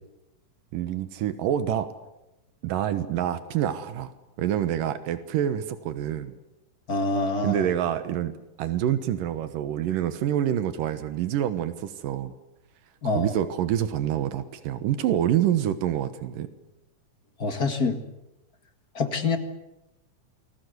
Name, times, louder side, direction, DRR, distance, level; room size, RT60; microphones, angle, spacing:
voice 1, 0.7-1.9 2.6-4.1 4.4-6.4 7.4-8.3 8.6-12.4 13.1-16.5, right 10 dB, 90° right, 11 dB, 2.9 m, -27 dB
voice 2, 6.9-7.6 13.0-13.3 17.4-18.0 19.0-19.4, left 3 dB, 35° left, 6 dB, 1.9 m, -25 dB
29.0 x 21.0 x 8.1 m, 0.94 s
omnidirectional pair, 3.7 m